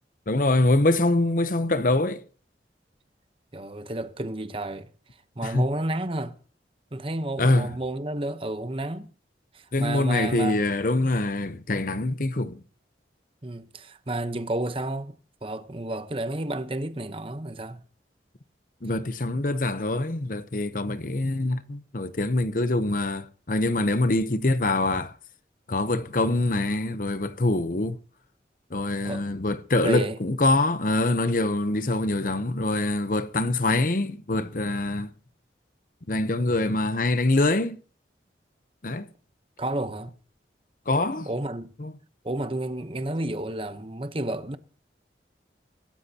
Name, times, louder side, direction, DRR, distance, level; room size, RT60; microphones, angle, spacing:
voice 1, 0.3-2.2 5.4-5.7 7.4-7.7 9.7-12.6 18.8-25.2 25.7-28.0 28.7-35.1 36.1-37.8 38.8-39.1 40.9-41.3 41.8-41.9, left 2 dB, 50° left, 0.9 m, -24 dB
voice 2, 3.5-4.9 5.4-6.4 6.9-9.1 9.5-10.6 13.4-15.1 15.4-17.8 29.0-29.2 29.8-30.2 39.6-40.1 41.3-41.7 42.2-44.6, right 1 dB, 30° right, 1.0 m, -31 dB
24.5 x 13.5 x 2.9 m
head